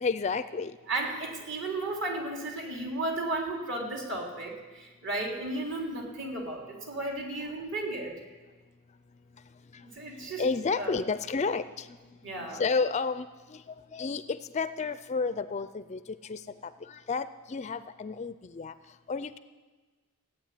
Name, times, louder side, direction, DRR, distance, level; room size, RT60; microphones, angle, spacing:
voice 1, 0.0-0.8 10.4-11.9 12.5-16.4 16.8-18.7 19.1-19.4, left 4 dB, 30° left, 13 dB, 0.4 m, -31 dB
voice 2, 0.9-8.2 9.8-10.5 10.8-11.0 12.2-12.6, right 2 dB, 55° right, -1 dB, 3.5 m, -34 dB
15.0 x 8.9 x 9.4 m, 1.3 s
head